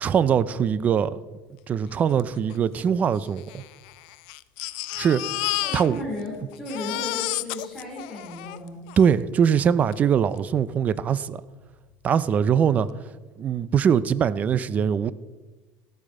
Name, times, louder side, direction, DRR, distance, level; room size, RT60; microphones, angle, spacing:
voice 1, 0.0-1.2 1.7-3.6 5.0-5.4 5.7-6.0 9.0-11.4 12.0-12.9 13.4-15.1, right 8 dB, 30° right, 16 dB, 0.5 m, -22 dB
Crying sobbing, 2.2-2.3 2.5-2.6 3.4-6.3 6.5-9.1 9.9-10.0 10.4-10.5, left 19 dB, 85° left, 0.5 m, -32 dB
voice 2, 5.6-8.8, left 1 dB, 5° right, -2 dB, 3.4 m, -35 dB
14.0 x 8.6 x 6.5 m, 1.2 s
cardioid pair, 145°, 5 cm